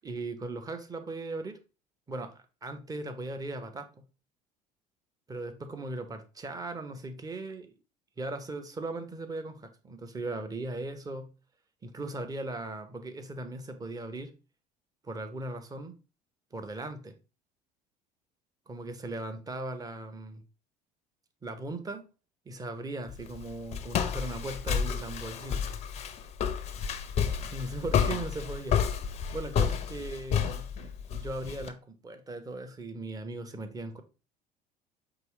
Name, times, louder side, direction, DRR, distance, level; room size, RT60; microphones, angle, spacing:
voice 1, 0.0-1.6 2.1-2.3 2.6-3.9 5.3-7.7 8.2-11.3 11.8-14.3 15.0-16.0 16.5-17.2 18.7-20.4 21.4-22.1 22.5-25.6 27.5-28.8 29.3-34.0, right 2 dB, 15° right, 0.6 m, -38 dB
Walk footsteps, 23.1-31.7, left 7 dB, 30° left, 0.5 m, -30 dB
4.6 x 2.9 x 3.0 m
figure-of-eight pair, 60°, 21 cm